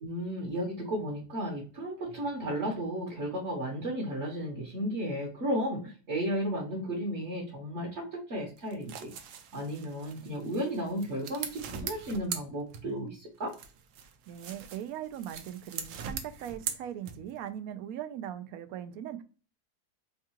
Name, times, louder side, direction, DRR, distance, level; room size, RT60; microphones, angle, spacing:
voice 1, 0.0-9.1 9.5-13.5, equal, 50° right, -1 dB, 1.2 m, -34 dB
sound 1, 8.6-13.1 13.5-17.5, right 7 dB, 90° right, 1.2 m, -41 dB
voice 2, 14.3-19.2, right 10 dB, 70° right, 11 dB, 1.0 m, -40 dB
4.6 x 2.3 x 2.8 m, 0.36 s
omnidirectional pair, 1.7 m